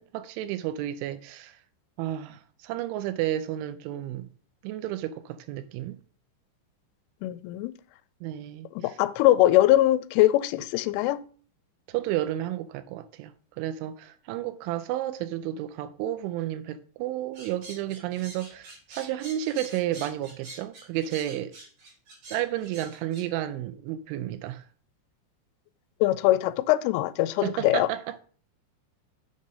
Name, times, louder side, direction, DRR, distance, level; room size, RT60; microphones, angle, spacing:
voice 1, 0.0-1.6 2.0-4.3 4.6-6.0 8.2-9.0 11.9-21.5 22.3-24.6 27.4-28.2, right 13 dB, 85° right, 3.0 m, -32 dB
voice 2, 7.2-7.7 8.8-11.2 26.0-27.9, left 15 dB, 85° left, 3.0 m, -22 dB
sound 1, 17.3-23.2, right 2 dB, 45° right, 4.5 m, -45 dB
7.4 x 5.5 x 5.3 m
omnidirectional pair, 5.6 m